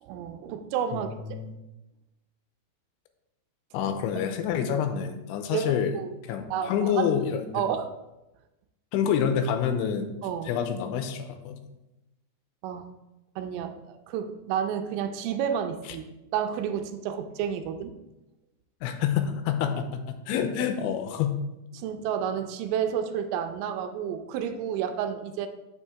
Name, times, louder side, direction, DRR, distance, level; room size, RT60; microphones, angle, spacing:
voice 1, 0.0-1.1 4.7-4.8 5.5-6.1 6.5-7.1 7.5-7.9 10.2-10.5 12.6-12.9 13.4-16.1 16.3-17.9 21.7-25.5, right 8 dB, 85° right, 7 dB, 3.2 m, -30 dB
voice 2, 0.9-1.6 3.7-6.0 6.3-7.6 8.9-10.1 10.5-11.6 18.8-21.4, left 8 dB, 85° left, 7 dB, 2.9 m, -27 dB
8.4 x 7.1 x 3.6 m, 0.98 s
omnidirectional pair, 5.7 m